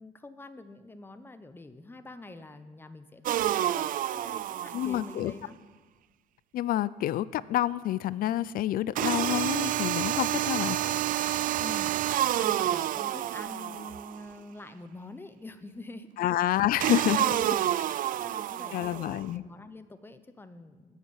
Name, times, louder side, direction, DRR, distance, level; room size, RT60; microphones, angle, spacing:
voice 1, 0.0-5.6 11.6-11.9 12.3-16.3 17.1-17.8 18.1-21.0, left 2 dB, 15° left, 11 dB, 0.7 m, -45 dB
sound 1, 3.3-5.2 9.0-14.2 16.8-19.2, right 12 dB, 55° right, 0.4 m, -29 dB
voice 2, 4.7-5.3 6.5-10.8 16.2-17.2 18.7-19.4, left 13 dB, 60° left, 19 dB, 0.4 m, -28 dB
9.4 x 7.0 x 8.0 m, 1.3 s
cardioid pair, 110°, 17 cm